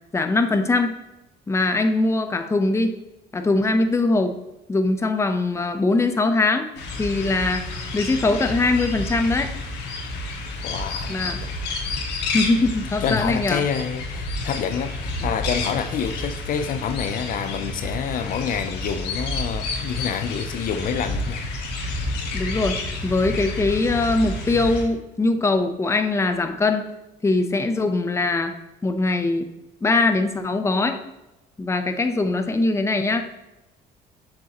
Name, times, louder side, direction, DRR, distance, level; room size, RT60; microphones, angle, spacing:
voice 1, 0.1-1.0 1.5-3.0 3.3-4.4 4.7-6.7 7.0-7.7 7.9-9.5 11.1-11.4 12.3-13.6 22.3-26.9 27.2-28.5 28.8-29.5 29.8-31.0 31.6-33.3, left 3 dB, 15° left, 7 dB, 0.7 m, -21 dB
sound 1, 6.8-24.8, left 2 dB, 80° left, 1.5 m, -30 dB
voice 2, 10.6-11.9 13.0-21.5, left 7 dB, 55° left, 9 dB, 0.5 m, -28 dB
7.2 x 6.7 x 2.9 m, 0.97 s
cardioid pair, 110°, 17 cm